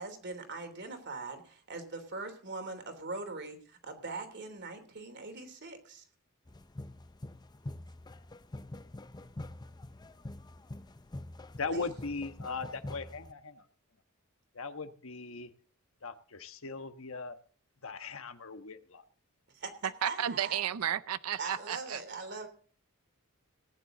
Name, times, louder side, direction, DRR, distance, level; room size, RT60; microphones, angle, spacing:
voice 1, 0.0-6.0 11.7-11.9 19.6-19.7 20.0-20.6 21.4-22.5, right 3 dB, 55° right, 6 dB, 3.3 m, -41 dB
sound 1, 6.5-13.3, left 1 dB, 20° left, 0.5 m, -45 dB
voice 2, 11.6-13.6 14.5-15.5 16.0-17.4 17.8-19.0, left 4 dB, 65° left, 9 dB, 1.3 m, -39 dB
voice 3, 20.0-22.0, right 10 dB, 85° right, 15 dB, 0.5 m, -33 dB
18.5 x 10.0 x 3.9 m, 0.43 s
head